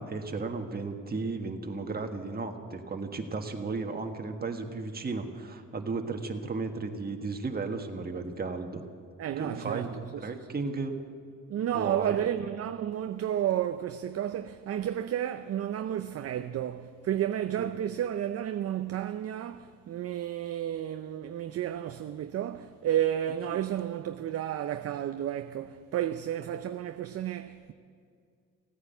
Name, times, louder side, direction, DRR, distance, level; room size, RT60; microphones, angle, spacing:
voice 1, 0.0-8.8 9.4-11.0 11.7-12.3 17.6-17.7, right 3 dB, 30° right, 1.5 m, -34 dB
voice 2, 9.2-10.5 11.5-27.7, right 11 dB, 50° right, 0.5 m, -32 dB
16.5 x 9.6 x 8.0 m
cardioid pair, 90°, 30 cm